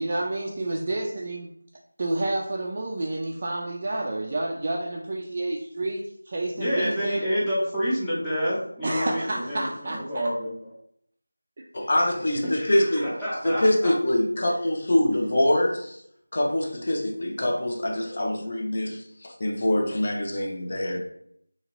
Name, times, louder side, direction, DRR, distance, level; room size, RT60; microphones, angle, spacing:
voice 1, 0.0-1.5 2.0-6.0 6.3-7.2 8.8-10.0, right 2 dB, 35° right, -1 dB, 0.3 m, -29 dB
voice 2, 6.6-10.7 12.4-13.9, equal, 5° left, -11 dB, 0.6 m, -28 dB
voice 3, 11.7-13.1 13.4-16.0 16.3-21.0, left 1 dB, 40° left, 1 dB, 0.6 m, -24 dB
2.9 x 2.8 x 2.9 m, 0.69 s
figure-of-eight pair, 170°, 0 cm